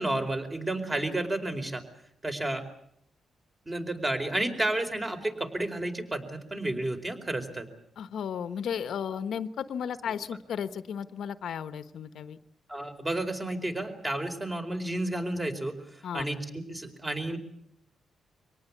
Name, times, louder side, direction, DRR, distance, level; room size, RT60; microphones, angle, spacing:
voice 1, 0.0-1.8 2.2-2.6 3.6-7.7 12.7-17.4, right 1 dB, 20° right, 5 dB, 4.6 m, -31 dB
voice 2, 8.0-12.4 16.0-16.3, left 8 dB, 75° left, 11 dB, 1.1 m, -34 dB
25.0 x 18.5 x 8.4 m, 0.69 s
cardioid pair, 90°, 0 cm